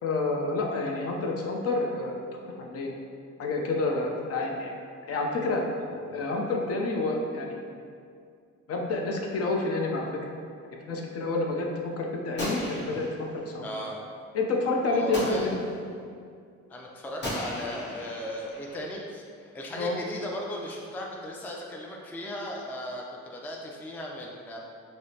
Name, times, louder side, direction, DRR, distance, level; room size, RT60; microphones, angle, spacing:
voice 1, 0.0-2.1 2.6-2.9 3.4-4.7 5.1-5.6 6.1-7.9 8.7-10.0 10.9-13.6 14.3-15.6 19.8-20.0, left 3 dB, 50° left, 0 dB, 0.6 m, -29 dB
Gunshot gunfire, 12.4-13.5 15.1-15.9 17.2-18.9, left 1 dB, 35° left, 1.0 m, -36 dB
voice 2, 13.6-14.1 14.9-15.6 16.7-24.6, equal, 5° left, -1 dB, 0.3 m, -37 dB
4.7 x 2.0 x 2.7 m, 2.3 s
cardioid pair, 90°, 30 cm